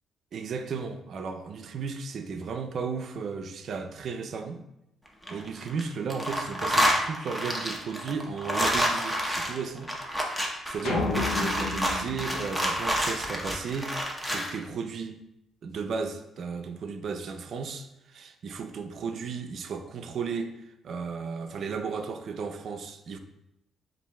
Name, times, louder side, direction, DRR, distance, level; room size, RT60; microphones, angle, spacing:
voice 1, 0.3-4.6 5.3-9.9 10.2-15.2 15.6-23.2, right 5 dB, 60° right, 7 dB, 0.4 m, -34 dB
sound 1, 5.1-5.8 6.1-14.5, equal, 5° left, 0.7 m, -28 dB
sound 2, 10.8-13.3, left 5 dB, 75° left, 0.4 m, -32 dB
7.0 x 2.6 x 2.2 m, 0.84 s
cardioid pair, 90°, 0 cm